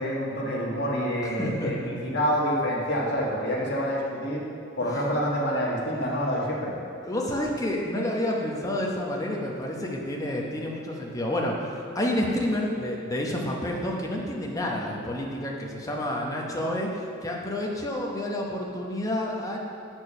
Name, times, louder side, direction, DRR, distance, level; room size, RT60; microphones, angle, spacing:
voice 1, 0.0-4.4 4.8-6.7, equal, 55° left, -4 dB, 1.5 m, -27 dB
voice 2, 1.4-1.7 4.8-5.0 7.0-19.6, left 1 dB, 15° left, -1 dB, 0.9 m, -29 dB
8.4 x 4.6 x 5.5 m, 2.5 s
head